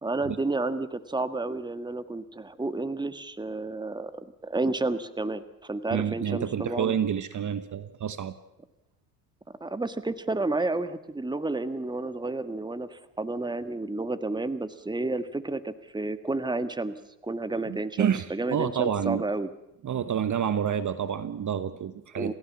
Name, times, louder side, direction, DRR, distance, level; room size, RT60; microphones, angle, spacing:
voice 1, 0.0-7.0 9.6-16.9 17.2-19.5 22.1-22.3, right 2 dB, 10° right, 11 dB, 1.6 m, -31 dB
voice 2, 5.9-8.3 17.7-19.2 19.8-22.3, right 8 dB, 35° right, 13 dB, 1.3 m, -28 dB
29.0 x 15.5 x 7.4 m, 0.86 s
hypercardioid pair, 65°, 49 cm